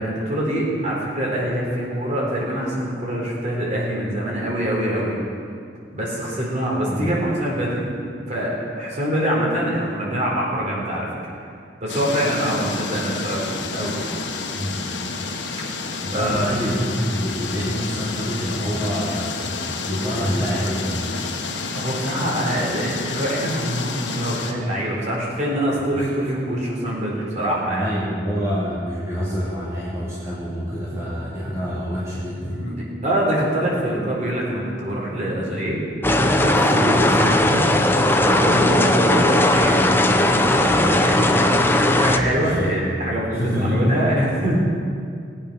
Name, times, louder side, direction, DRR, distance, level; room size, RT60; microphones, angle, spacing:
voice 1, 0.0-5.2 5.9-7.8 8.3-11.1 11.8-14.2 16.1-16.4 17.7-17.8 21.7-27.9 32.5-32.8 33.0-35.8 36.4-37.6 38.2-39.9 40.3-44.6, right 1 dB, 40° right, -4 dB, 4.0 m, -24 dB
sound 1, 11.9-24.5, left 4 dB, 80° left, 1.3 m, -30 dB
voice 2, 16.0-19.5 19.8-21.0 25.9-26.1 27.7-32.8 42.2-43.0 43.3-43.9, equal, 15° right, -9 dB, 2.5 m, -26 dB
sound 2, 36.0-42.2, left 1 dB, 10° left, 0.7 m, -17 dB
18.5 x 8.8 x 5.8 m, 2.3 s
head